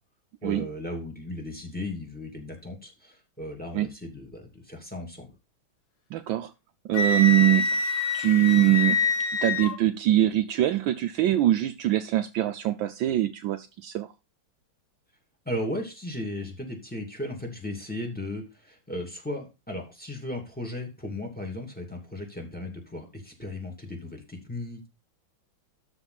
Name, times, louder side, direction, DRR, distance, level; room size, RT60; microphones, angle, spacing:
voice 1, 0.4-5.3 15.4-24.9, left 1 dB, 5° left, 3 dB, 2.5 m, -36 dB
voice 2, 6.1-6.5 6.8-7.8 8.1-9.0 9.4-14.1, right 14 dB, 75° right, 9 dB, 1.3 m, -23 dB
Wind instrument woodwind instrument, 6.9-9.7, left 4 dB, 60° left, 1.9 m, -26 dB
13.0 x 4.4 x 4.1 m, 0.27 s
omnidirectional pair, 2.3 m